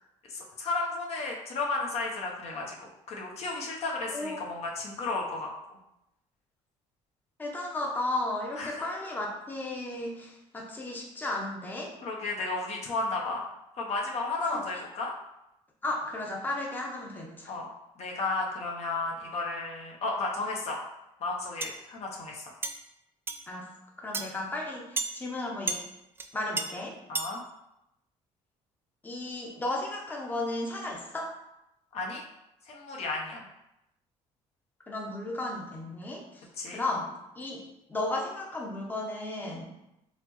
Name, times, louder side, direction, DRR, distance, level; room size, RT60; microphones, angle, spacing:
voice 1, 0.3-5.5 8.5-8.9 12.0-13.4 13.8-15.1 17.5-17.7 18.0-20.8 21.2-22.4 27.1-27.4 31.9-32.2 32.7-33.5 36.6-36.8, left 3 dB, 55° left, -1 dB, 0.8 m, -33 dB
voice 2, 7.4-11.9 14.5-14.6 15.8-17.5 23.5-23.7 24.0-25.8 26.3-27.0 29.0-31.3 34.9-36.2 36.7-39.7, left 2 dB, 15° left, -1 dB, 0.7 m, -34 dB
sound 1, 21.6-21.8 22.6-22.8 23.3-23.4 24.1-24.3 25.0-25.1 25.7-25.8 26.2-26.3 26.6-26.7 27.2-27.3, right 3 dB, 20° right, 0.3 m, -31 dB
4.1 x 2.9 x 3.0 m, 0.86 s
cardioid pair, 100°, 13 cm